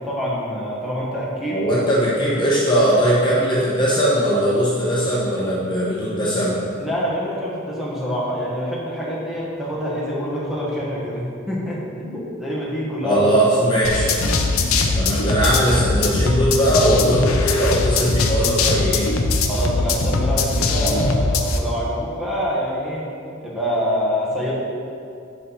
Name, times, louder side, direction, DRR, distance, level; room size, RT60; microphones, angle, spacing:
voice 1, 0.0-1.6 6.8-13.2 14.4-14.6 19.5-23.1 23.4-24.5, equal, ahead, -7 dB, 1.4 m, -26 dB
voice 2, 1.5-6.6 13.0-14.1 15.0-19.1, equal, 20° left, -7 dB, 1.1 m, -19 dB
sound 1, 13.8-21.6, left 3 dB, 85° left, 0.7 m, -21 dB
8.4 x 5.6 x 4.2 m, 2.5 s
head